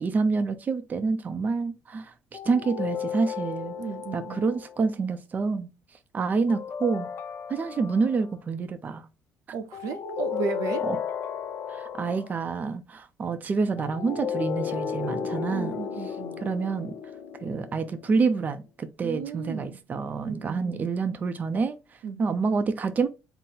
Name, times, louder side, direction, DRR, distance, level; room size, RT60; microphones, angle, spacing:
voice 1, 0.0-2.1 2.4-3.8 4.1-5.7 6.1-7.1 7.5-9.1 10.9-11.0 11.7-15.8 16.4-16.9 17.4-23.1, right 4 dB, 30° right, 0.5 m, -27 dB
sound 1, 2.3-4.8 6.5-8.3 9.7-12.4 13.8-18.3, left 7 dB, 50° left, 0.6 m, -34 dB
voice 2, 3.8-4.5 9.5-10.9 15.5-16.4 19.0-19.8 20.2-20.8 22.0-22.4, right 6 dB, 80° right, 0.7 m, -35 dB
3.8 x 2.0 x 4.1 m
cardioid pair, 105°, 5 cm